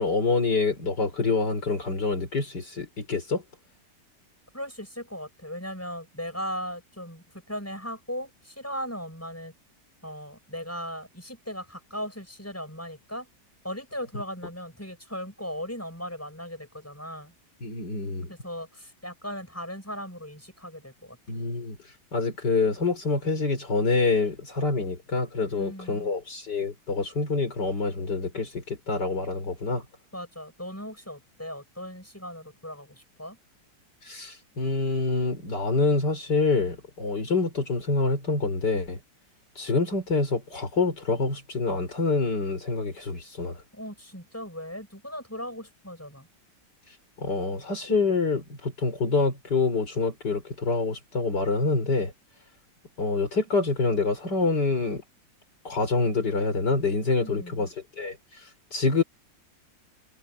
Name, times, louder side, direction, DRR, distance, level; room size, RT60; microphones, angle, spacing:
voice 1, 0.0-3.4 17.6-18.3 21.3-21.8 22.1-29.8 34.0-39.0 39.6-43.6 47.2-52.1 53.0-55.0 55.6-57.7 58.0-59.0, left 3 dB, 65° left, 4.9 m, -26 dB
voice 2, 4.5-9.5 10.0-13.3 13.6-17.3 18.3-21.2 25.5-26.1 30.1-33.4 43.7-46.3 57.2-57.7, equal, 5° left, 5.5 m, -38 dB
omnidirectional pair, 2.0 m